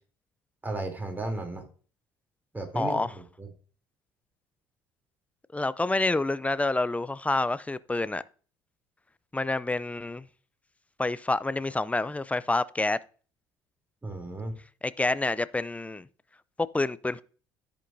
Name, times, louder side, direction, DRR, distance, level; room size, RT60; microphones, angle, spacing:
voice 1, 0.6-1.6 2.5-3.5 14.0-14.6, right 2 dB, 15° right, 3.1 m, -34 dB
voice 2, 2.8-3.1 5.5-8.2 9.3-10.2 11.0-13.0 14.8-16.1 16.7-17.2, left 2 dB, 10° left, 0.5 m, -28 dB
13.5 x 5.2 x 2.6 m
hypercardioid pair, 60°, 12 cm